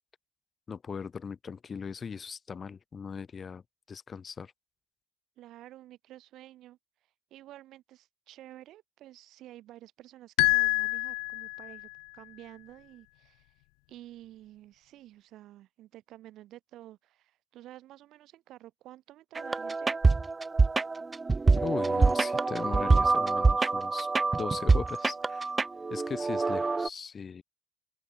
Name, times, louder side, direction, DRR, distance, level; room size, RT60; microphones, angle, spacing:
voice 1, 0.7-3.6 3.9-4.5 21.6-24.1 24.4-25.5 25.9-27.4, left 6 dB, 35° left, 3.8 m, -39 dB
voice 2, 5.4-6.8 7.3-13.5 13.9-20.0, right 14 dB, 55° right, 4.6 m, -51 dB
sound 1, 10.4-11.9, left 40 dB or more, 65° left, 0.5 m, -27 dB
sound 2, 19.4-26.9, right 3 dB, 20° right, 0.9 m, -26 dB
open air
figure-of-eight pair, 55°, 0 cm